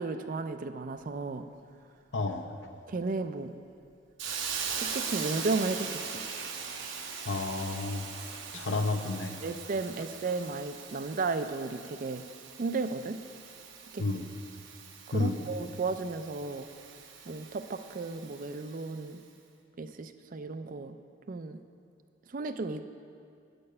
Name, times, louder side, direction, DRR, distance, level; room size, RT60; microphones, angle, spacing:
voice 1, 0.0-1.5 2.9-3.5 4.8-6.3 8.7-8.8 9.4-12.3 12.6-13.2 13.9-14.1 15.1-16.7 17.3-19.3 19.8-21.0 21.3-21.6 22.3-22.8, right 3 dB, 45° right, 10 dB, 0.4 m, -34 dB
voice 2, 2.1-2.5 7.2-8.1 8.5-9.4 14.0-14.2 15.1-15.4, left 3 dB, 65° left, 5 dB, 0.8 m, -31 dB
Hiss, 4.2-19.0, right 6 dB, 70° right, 0.9 m, -41 dB
9.6 x 6.7 x 6.6 m, 2.3 s
head